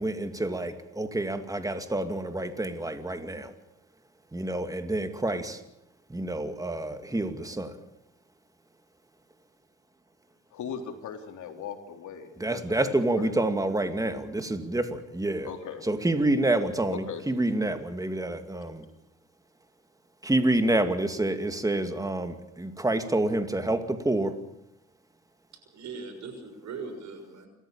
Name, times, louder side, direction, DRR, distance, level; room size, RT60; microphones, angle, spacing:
voice 1, 0.0-3.5 4.3-5.6 6.1-7.8 12.4-15.5 15.9-18.8 20.2-24.4, right 1 dB, 10° right, 8 dB, 2.5 m, -28 dB
voice 2, 10.5-13.5 15.4-15.8 16.9-17.2, left 7 dB, 75° left, 5 dB, 3.7 m, -39 dB
voice 3, 25.5-27.5, right 4 dB, 70° right, 7 dB, 6.3 m, -40 dB
28.5 x 14.0 x 8.8 m, 0.81 s
cardioid pair, 90°, 30 cm